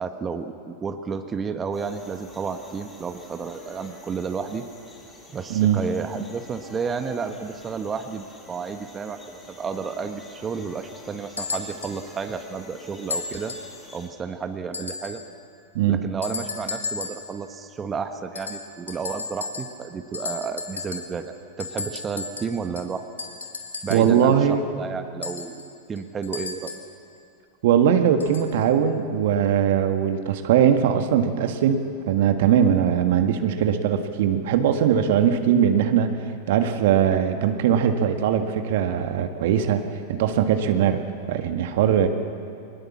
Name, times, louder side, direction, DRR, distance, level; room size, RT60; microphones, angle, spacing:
voice 1, 0.0-4.6 5.3-13.6 13.9-15.2 15.9-23.0 23.8-26.7, right 5 dB, 25° right, 7 dB, 1.4 m, -32 dB
sound 1, 1.7-14.1, left 2 dB, 15° left, 6.8 m, -47 dB
voice 2, 5.5-5.8 15.7-16.0 23.9-24.6 27.6-39.8 40.1-41.0 41.3-42.1, right 8 dB, 60° right, 7 dB, 1.7 m, -20 dB
sound 2, 11.4-12.0 13.1-13.8 14.7-15.3 16.2-17.3 18.3-19.9 20.1-21.2 21.6-24.2 25.2-26.9 28.2-28.5 29.4-29.5, left 4 dB, 90° left, 2.8 m, -34 dB
22.5 x 20.0 x 7.4 m, 2.5 s
hypercardioid pair, 95°, 0 cm